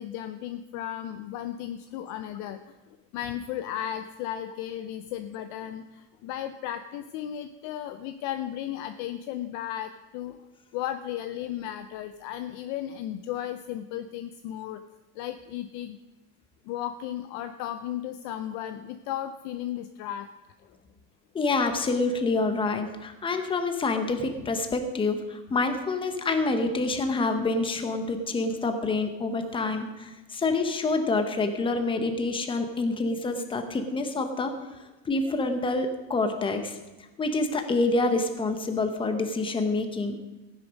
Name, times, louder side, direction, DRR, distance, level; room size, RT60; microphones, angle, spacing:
voice 1, 0.0-2.7 3.1-10.4 10.7-14.8 15.2-16.0 16.7-20.3 31.8-31.9, left 11 dB, 40° left, 9 dB, 0.5 m, -35 dB
voice 2, 21.3-34.5 35.0-36.8 37.2-40.2, left 3 dB, 10° left, 7 dB, 0.9 m, -27 dB
15.5 x 10.0 x 5.2 m, 1.1 s
cardioid pair, 165°, 46 cm